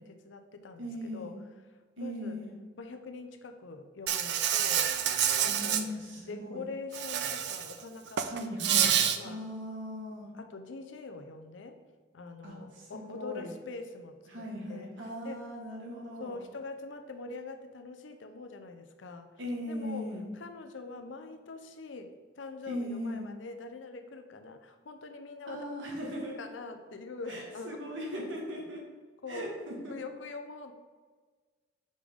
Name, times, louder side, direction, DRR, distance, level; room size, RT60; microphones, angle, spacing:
voice 1, 0.0-1.4 2.0-2.4 2.8-5.0 5.4-5.9 6.3-8.2 8.7-9.4 10.3-11.8 12.1-14.9 15.2-15.4 16.2-19.4 19.7-20.1 20.3-25.6 26.4-27.9 29.2-29.5 29.9-30.7, left 3 dB, 75° left, 7 dB, 0.6 m, -44 dB
voice 2, 0.8-1.4 2.0-2.5 5.5-6.7 8.2-8.9 9.2-10.3 12.4-13.5 14.3-16.4 19.4-20.2 22.7-23.3 25.5-26.3 27.3-28.8 29.3-29.9, equal, 75° right, -2 dB, 1.5 m, -39 dB
Insect, 4.1-5.8 6.9-7.7 8.1-9.2, right 9 dB, 60° right, 0.4 m, -27 dB
5.3 x 5.1 x 3.6 m, 1.5 s
head